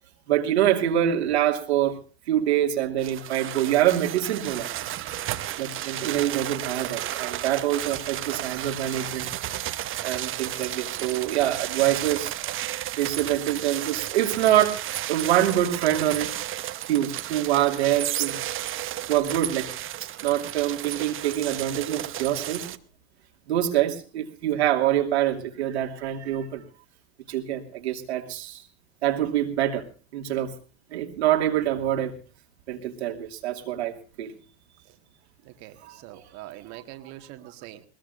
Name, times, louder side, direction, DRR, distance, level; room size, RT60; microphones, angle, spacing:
voice 1, 0.3-2.0 2.3-4.7 5.6-9.3 10.0-12.4 13.0-16.3 16.9-18.4 18.7-19.7 20.2-22.7 23.5-26.6 27.3-28.6 29.0-29.9 30.1-30.5 30.9-32.1 32.7-34.3 35.8-36.2, right 12 dB, 85° right, 3 dB, 2.7 m, -25 dB
sound 1, 3.0-22.8, right 13 dB, 40° right, 1.1 m, -33 dB
voice 2, 35.4-37.8, right 14 dB, 60° right, 7 dB, 1.8 m, -44 dB
20.5 x 20.5 x 2.6 m, 0.36 s
hypercardioid pair, 95°, 32 cm